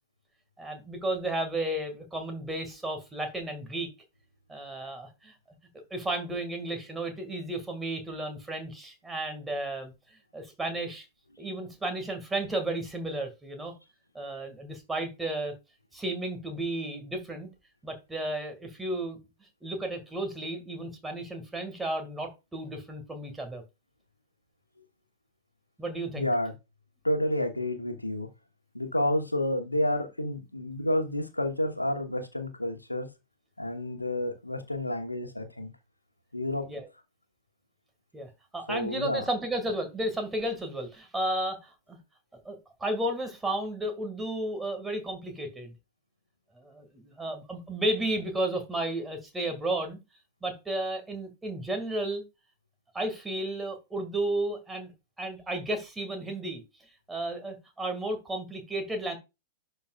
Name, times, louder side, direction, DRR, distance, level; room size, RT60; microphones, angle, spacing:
voice 1, 0.6-3.9 4.5-5.3 5.9-9.9 10.3-11.1 11.4-13.7 14.1-15.5 15.9-17.5 17.8-19.2 19.6-23.6 25.8-26.3 36.7-36.9 38.1-42.0 42.5-45.7 46.6-50.0 50.4-52.2 52.9-54.9 55.2-56.6 57.1-59.2, right 1 dB, 10° right, 1.9 m, -33 dB
voice 2, 26.2-26.5 27.0-28.3 28.7-33.1 33.6-35.7 36.3-36.6 38.7-39.2, left 1 dB, 85° left, 1.1 m, -30 dB
11.5 x 4.5 x 2.4 m
figure-of-eight pair, 95°, 0 cm